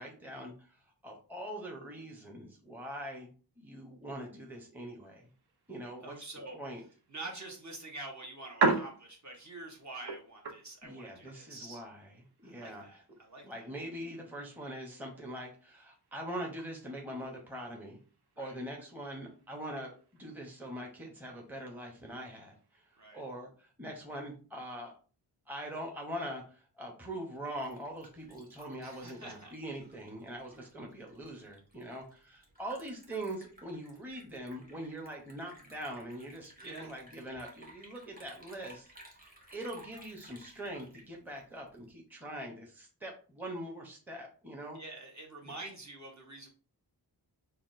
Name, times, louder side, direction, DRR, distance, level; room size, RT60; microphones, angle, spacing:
voice 1, 0.0-3.3 3.6-5.3 5.7-6.1 6.5-6.8 10.8-13.0 13.4-18.0 18.4-25.0 25.5-44.8, right 1 dB, 5° right, 0 dB, 0.8 m, -43 dB
sound 1, 5.0-23.2, right 4 dB, 65° right, 0.8 m, -41 dB
voice 2, 6.0-6.6 7.1-11.8 12.4-13.7 18.4-18.5 23.0-23.2 28.8-29.5 36.6-36.9 44.7-46.5, right 2 dB, 40° right, 1 dB, 1.1 m, -46 dB
Liquid, 27.3-41.9, right 1 dB, 20° right, 1.2 m, -57 dB
5.8 x 2.3 x 2.6 m, 0.38 s
wide cardioid pair, 135°, 42 cm